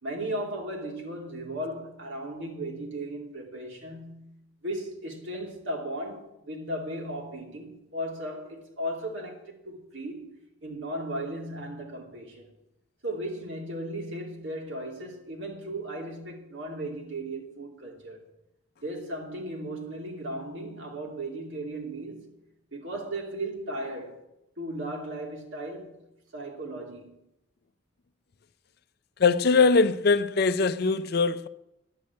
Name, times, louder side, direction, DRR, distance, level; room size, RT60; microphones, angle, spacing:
voice 1, 0.0-4.3 4.6-10.3 10.6-12.5 13.0-18.3 18.8-22.3 22.7-24.2 24.6-26.0 26.3-27.2, right 1 dB, 65° right, 3.0 m, -36 dB
voice 2, 29.2-31.5, left 4 dB, 50° left, 0.5 m, -22 dB
10.5 x 7.8 x 9.5 m
head